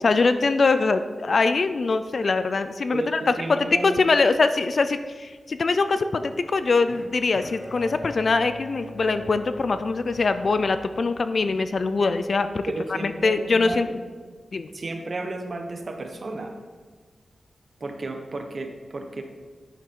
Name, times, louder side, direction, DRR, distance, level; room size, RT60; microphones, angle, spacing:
voice 1, 0.0-3.2 3.5-12.7 13.0-13.9 14.5-14.7, left 3 dB, 50° left, 10 dB, 0.5 m, -23 dB
voice 2, 2.9-4.0 12.7-14.0 14.7-16.6 17.8-19.2, right 2 dB, 45° right, 4 dB, 1.2 m, -33 dB
Bowed string instrument, 6.9-11.1, left 2 dB, 30° left, 1.2 m, -41 dB
10.5 x 9.4 x 4.7 m, 1.5 s
wide cardioid pair, 155°, 0 cm